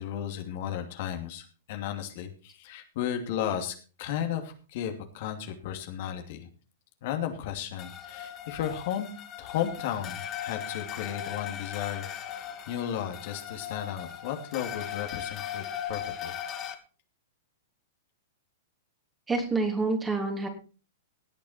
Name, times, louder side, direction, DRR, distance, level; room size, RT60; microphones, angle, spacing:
voice 1, 0.0-6.5 7.0-9.1 9.4-16.3, left 10 dB, 55° left, 5 dB, 2.7 m, -34 dB
sound 1, 7.8-16.7, left 9 dB, 30° left, 2.5 m, -38 dB
voice 2, 19.3-20.5, right 3 dB, 15° right, 4 dB, 3.4 m, -27 dB
18.0 x 8.7 x 4.4 m, 0.36 s
hypercardioid pair, 110°, 0 cm